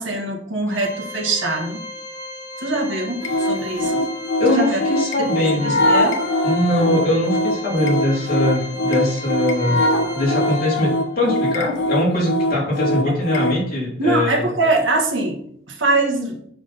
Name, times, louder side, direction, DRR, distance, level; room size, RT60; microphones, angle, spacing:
voice 1, 0.0-1.8 2.6-4.1 4.5-4.8 5.2-5.3 5.6-6.2 14.0-15.4 15.7-16.4, right 2 dB, 75° right, 3 dB, 1.6 m, -22 dB
Organ, 0.7-11.3, left 1 dB, 10° left, 3.6 m, -36 dB
sound 1, 3.2-13.6, left 1 dB, 65° left, 1.0 m, -22 dB
voice 2, 4.4-5.8 6.4-9.8 10.1-14.4, left 1 dB, 45° left, -5 dB, 3.2 m, -21 dB
7.3 x 6.0 x 4.2 m, 0.65 s
head